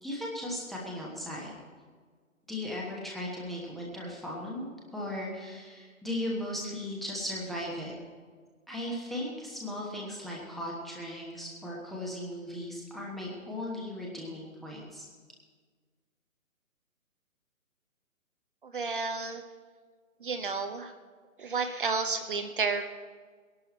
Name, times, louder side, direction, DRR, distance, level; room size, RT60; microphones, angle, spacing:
voice 1, 0.0-1.5 2.5-7.9 8.7-15.1, left 1 dB, ahead, -4 dB, 1.1 m, -37 dB
voice 2, 18.6-19.4 20.2-20.9 21.4-22.8, right 4 dB, 40° right, 6 dB, 0.9 m, -31 dB
21.0 x 11.5 x 4.2 m, 1.5 s
figure-of-eight pair, 135°, 42 cm